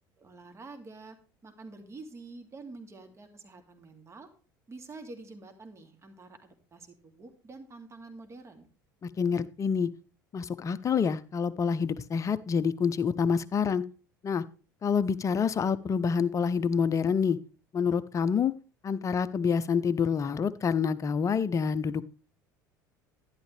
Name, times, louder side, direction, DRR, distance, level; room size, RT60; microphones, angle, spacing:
voice 1, 0.2-4.3 4.7-8.7, right 3 dB, 25° right, 2.3 m, -47 dB
voice 2, 9.0-9.9 10.3-13.8 14.2-14.4 14.8-17.4 17.7-18.5 18.8-22.0, left 6 dB, 30° left, 0.7 m, -27 dB
11.5 x 11.0 x 3.3 m
figure-of-eight pair, 65°, 11 cm